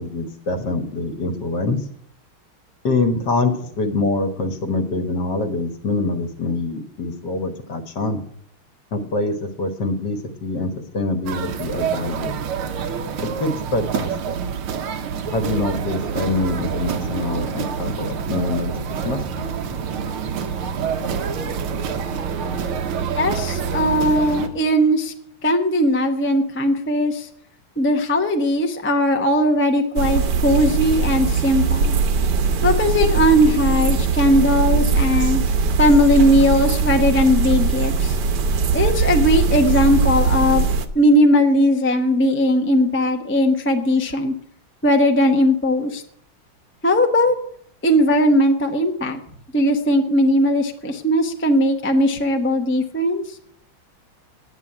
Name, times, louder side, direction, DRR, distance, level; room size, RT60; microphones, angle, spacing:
voice 1, 0.0-1.9 2.8-8.2 8.9-12.3 13.2-14.4 15.3-18.8 19.0-19.2, left 2 dB, 55° left, 7 dB, 1.9 m, -24 dB
sound 1, 11.3-24.5, right 7 dB, 90° right, 2.0 m, -27 dB
voice 2, 23.1-25.1 25.4-27.3 27.8-31.9 32.6-35.4 35.8-38.2 38.7-40.6 40.9-44.3 44.8-46.0 46.8-47.3 47.8-49.2 49.5-53.2, equal, 10° left, 4 dB, 0.7 m, -18 dB
sound 2, 30.0-40.9, right 4 dB, 60° right, 1.4 m, -20 dB
9.5 x 9.1 x 9.7 m, 0.67 s
omnidirectional pair, 2.3 m